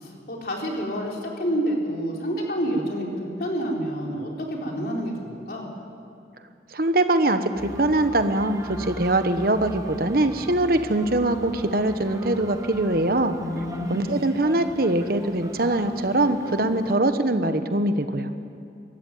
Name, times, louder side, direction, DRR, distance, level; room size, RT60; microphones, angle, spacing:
voice 1, 0.0-5.7 13.3-14.2, equal, 55° left, -1 dB, 4.1 m, -28 dB
voice 2, 6.7-13.4 13.9-18.3, right 1 dB, 55° right, 9 dB, 1.2 m, -22 dB
sound 1, 7.5-16.9, right 1 dB, 20° right, 1.4 m, -41 dB
24.0 x 14.0 x 9.4 m, 2.6 s
head